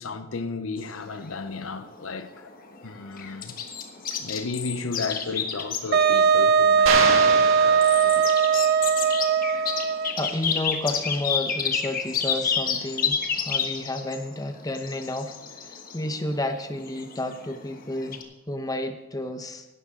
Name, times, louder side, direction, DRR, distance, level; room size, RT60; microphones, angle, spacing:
voice 1, 0.0-2.5 2.8-3.5 4.1-8.4, left 4 dB, 75° left, 0.8 m, -34 dB
sound 1, 0.8-18.2, left 6 dB, 45° left, 1.3 m, -31 dB
Wind instrument woodwind instrument, 5.9-10.3, right 6 dB, 50° right, 0.5 m, -20 dB
sound 2, 6.9-8.6, right 4 dB, 75° right, 2.0 m, -27 dB
voice 2, 10.2-19.7, left 1 dB, 15° left, 0.9 m, -31 dB
16.5 x 12.0 x 3.8 m
head